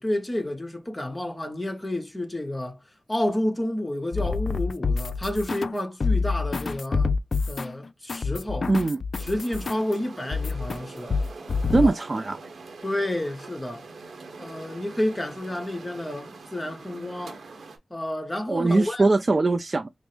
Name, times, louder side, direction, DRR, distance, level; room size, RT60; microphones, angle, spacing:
voice 1, 0.0-2.8 3.1-7.1 7.5-8.7 9.2-11.2 11.8-11.9 12.8-13.9 14.4-17.4 17.9-19.1, left 1 dB, 25° left, 1.1 m, -30 dB
sound 1, 4.1-5.7 6.0-9.9 10.3-10.8 11.1-11.9, left 4 dB, 65° left, 0.5 m, -27 dB
voice 2, 8.7-9.0 11.7-12.4 18.5-19.9, right 3 dB, 45° right, 0.4 m, -21 dB
sound 2, 9.1-17.8, right 4 dB, 85° right, 0.9 m, -44 dB
5.1 x 2.0 x 3.2 m
cardioid pair, 40°, 0 cm